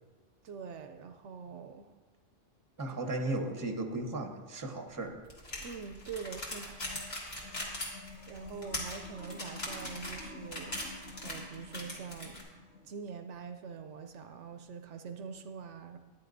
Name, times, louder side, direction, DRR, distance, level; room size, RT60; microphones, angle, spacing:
voice 1, 0.4-1.9 2.9-3.0 5.6-6.9 8.3-12.4 12.8-16.0, right 6 dB, 75° right, 7 dB, 0.9 m, -44 dB
voice 2, 2.8-5.2, right 2 dB, 20° right, 5 dB, 0.7 m, -35 dB
sound 1, 5.3-12.4, left 1 dB, 55° left, 2.1 m, -40 dB
sound 2, 6.6-13.0, left 3 dB, 70° left, 1.6 m, -50 dB
13.5 x 10.0 x 2.6 m, 1.3 s
omnidirectional pair, 1.3 m